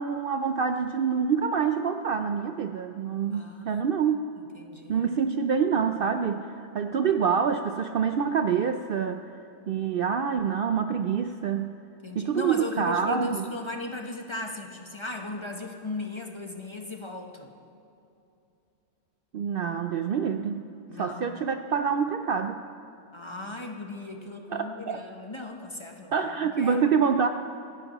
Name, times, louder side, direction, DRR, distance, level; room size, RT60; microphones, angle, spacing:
voice 1, 0.0-4.2 4.9-6.5 6.7-9.2 9.7-11.7 12.2-13.5 19.3-20.6 21.0-22.5 24.5-25.0 26.1-27.3, right 6 dB, 60° right, 7 dB, 0.6 m, -26 dB
voice 2, 3.3-3.8 4.4-5.0 12.0-17.5 20.9-21.4 23.1-26.1 26.6-26.8, left 2 dB, 25° left, 3 dB, 0.8 m, -37 dB
27.0 x 11.0 x 3.0 m, 2.7 s
omnidirectional pair, 1.3 m